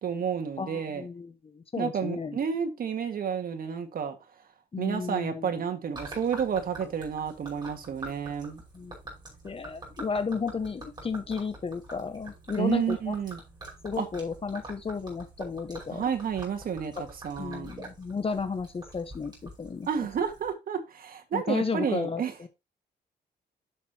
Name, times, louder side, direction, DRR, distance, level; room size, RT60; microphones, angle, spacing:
voice 1, 0.0-1.1 1.8-4.2 4.8-8.6 12.6-13.4 14.0-14.1 15.9-17.7 19.9-22.3, right 7 dB, 60° right, 1.8 m, -30 dB
voice 2, 0.6-2.4 4.7-5.5 8.7-9.0 9.4-13.2 13.8-16.0 17.0-17.1 17.4-19.9 21.3-22.5, left 5 dB, 35° left, 1.1 m, -33 dB
Gurgling / Liquid, 5.9-20.5, right 2 dB, 25° right, 5.5 m, -46 dB
11.0 x 6.6 x 2.9 m
cardioid pair, 95°, 17 cm